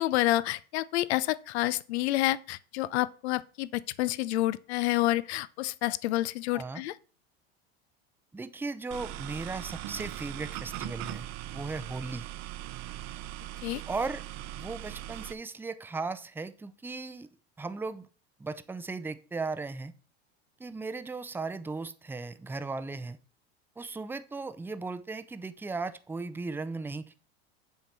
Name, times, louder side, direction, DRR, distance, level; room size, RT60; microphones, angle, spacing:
voice 1, 0.0-6.9 13.6-13.8, left 16 dB, 80° left, 0.6 m, -29 dB
voice 2, 8.3-11.3 11.5-12.3 13.9-14.2 14.6-17.3 17.6-18.1 18.4-19.9 20.6-23.2 23.8-27.2, right 3 dB, 5° right, 0.5 m, -36 dB
sound 1, 8.9-15.3, right 13 dB, 55° right, 0.7 m, -40 dB
7.4 x 4.5 x 6.7 m
hypercardioid pair, 100°, 32 cm